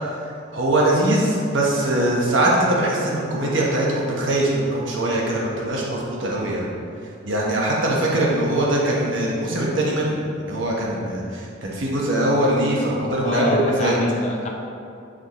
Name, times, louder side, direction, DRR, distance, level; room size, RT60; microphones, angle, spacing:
voice 1, 0.5-6.7 7.2-13.9, right 1 dB, 70° right, -3 dB, 1.1 m, -22 dB
voice 2, 13.1-14.5, left 1 dB, 35° left, 1 dB, 0.8 m, -25 dB
9.8 x 5.1 x 3.1 m, 2.5 s
head